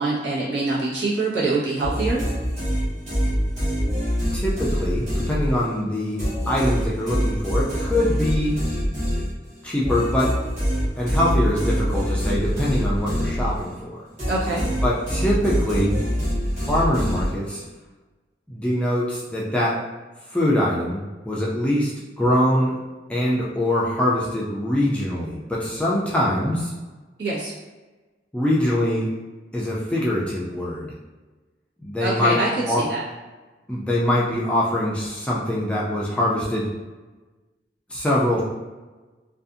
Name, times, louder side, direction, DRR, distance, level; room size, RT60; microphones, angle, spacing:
voice 1, 0.0-2.2 14.3-14.7 27.2-27.5 32.0-33.0, right 2 dB, 75° right, -8 dB, 1.0 m, -24 dB
sound 1, 1.8-5.8 6.2-13.8 14.2-17.7, equal, 45° right, 1.2 m, -25 dB
voice 2, 4.3-8.6 9.6-10.3 11.0-14.0 14.8-16.0 16.6-17.6 18.5-19.8 20.3-21.9 22.2-22.7 23.1-26.7 28.3-29.1 29.5-30.9 31.8-32.4 32.7-32.8 33.7-36.7 37.9-38.4, left 1 dB, 5° left, -6 dB, 0.3 m, -23 dB
2.5 x 2.4 x 2.5 m, 1.2 s
head